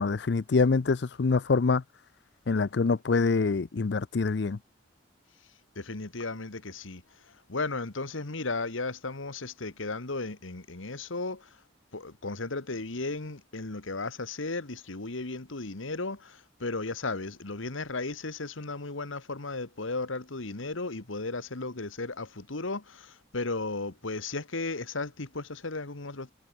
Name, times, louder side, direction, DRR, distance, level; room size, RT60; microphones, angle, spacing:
voice 1, 0.0-1.8 2.5-4.6, left 4 dB, 60° left, 0.5 m, -25 dB
voice 2, 5.7-7.0 7.5-11.5 11.9-26.3, left 3 dB, 80° left, 1.7 m, -35 dB
head